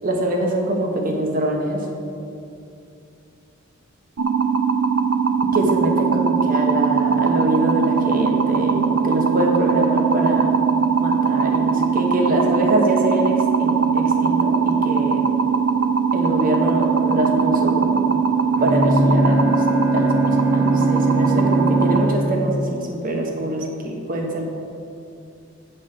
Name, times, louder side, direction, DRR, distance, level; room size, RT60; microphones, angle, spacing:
voice 1, 0.0-1.8 5.5-10.6 11.0-15.2 16.1-18.0 18.6-19.6 19.9-24.4, right 1 dB, 45° right, 1 dB, 1.1 m, -24 dB
sound 1, 4.2-22.0, right 6 dB, 90° right, 0.5 m, -20 dB
Bowed string instrument, 18.5-22.6, equal, 5° right, 0.7 m, -22 dB
7.7 x 5.1 x 6.6 m, 2.6 s
head